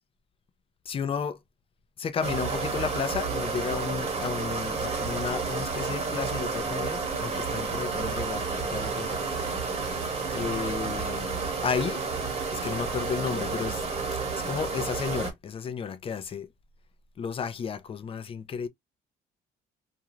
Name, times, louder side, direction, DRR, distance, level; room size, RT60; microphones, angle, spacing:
voice 1, 0.9-1.4 2.0-9.7 10.3-12.0 12.5-13.8 14.1-16.5 17.2-18.7, left 6 dB, 35° left, 0.5 m, -33 dB
sound 1, 2.2-15.3, right 4 dB, 40° right, 1.1 m, -31 dB
2.5 x 2.3 x 3.0 m
cardioid pair, 110°, 17 cm